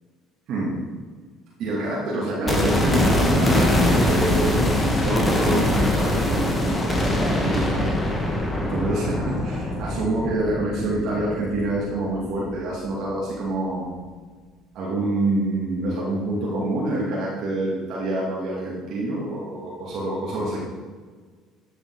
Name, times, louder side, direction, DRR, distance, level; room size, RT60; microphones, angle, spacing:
voice 1, 1.6-7.9 8.6-14.0 14.7-20.6, right 1 dB, 60° right, -6 dB, 2.2 m, -26 dB
sound 1, 2.5-12.5 12.8-12.9, left 1 dB, 20° left, 1.7 m, -23 dB
13.0 x 5.0 x 4.0 m, 1.5 s
hypercardioid pair, 60°, 0 cm